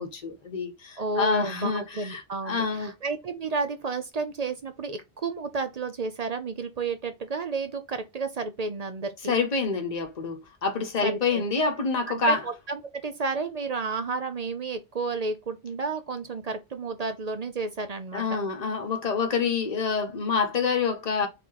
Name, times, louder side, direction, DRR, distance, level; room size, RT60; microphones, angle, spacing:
voice 1, 0.0-2.9 9.3-12.4 18.1-21.3, left 4 dB, 40° left, 1.0 m, -27 dB
voice 2, 1.0-9.3 11.0-11.4 12.1-18.4, right 4 dB, 45° right, 0.5 m, -32 dB
3.8 x 3.0 x 3.8 m
omnidirectional pair, 1.1 m